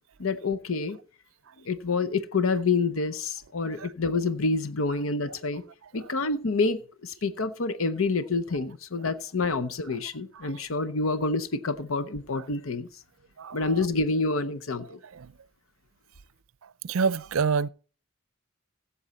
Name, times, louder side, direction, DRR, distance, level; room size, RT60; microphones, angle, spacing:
voice 1, 0.2-1.0 1.7-5.6 5.9-12.9 13.5-15.0, left 3 dB, 80° left, 0.8 m, -28 dB
voice 2, 13.4-13.8 15.1-15.3 16.8-17.7, right 5 dB, 75° right, 0.5 m, -28 dB
16.0 x 7.1 x 4.2 m
head